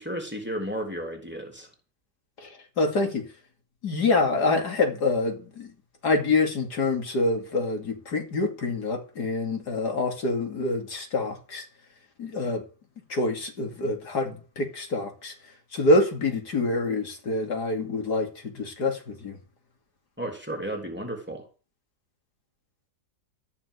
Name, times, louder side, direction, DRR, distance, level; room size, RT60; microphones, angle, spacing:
voice 1, 0.0-1.7 20.2-21.5, right 1 dB, 5° right, 3.4 m, -33 dB
voice 2, 2.4-3.3 3.8-5.7 6.0-11.6 12.2-12.6 13.1-15.3 15.7-19.4, left 2 dB, 80° left, 3.1 m, -26 dB
14.0 x 6.0 x 8.2 m
omnidirectional pair, 1.7 m